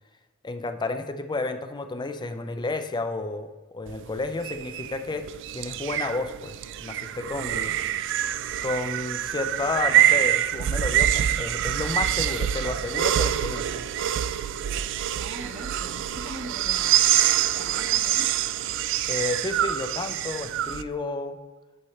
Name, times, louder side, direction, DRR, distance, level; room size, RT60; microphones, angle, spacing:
voice 1, 0.4-5.3 5.5-7.7 8.6-13.8 19.1-21.4, left 3 dB, 20° left, 8 dB, 0.5 m, -31 dB
sound 1, 3.9-20.8, right 11 dB, 60° right, 0.3 m, -25 dB
voice 2, 10.0-10.3 15.2-17.0 17.5-18.3, right 1 dB, 35° right, 3 dB, 1.0 m, -41 dB
11.0 x 4.3 x 3.2 m, 1.3 s
head